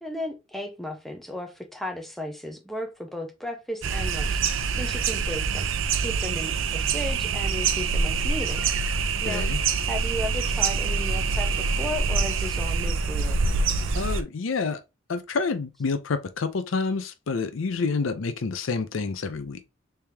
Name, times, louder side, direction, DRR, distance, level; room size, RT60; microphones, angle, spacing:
voice 1, 0.0-5.7 5.9-8.6 9.2-9.5 9.9-13.4, left 1 dB, ahead, 0.7 m, -35 dB
sound 1, 3.8-14.2, right 5 dB, 80° right, 0.5 m, -25 dB
voice 2, 9.3-9.6 13.9-14.8 15.1-19.6, left 4 dB, 80° left, 0.5 m, -28 dB
3.4 x 3.4 x 2.7 m
head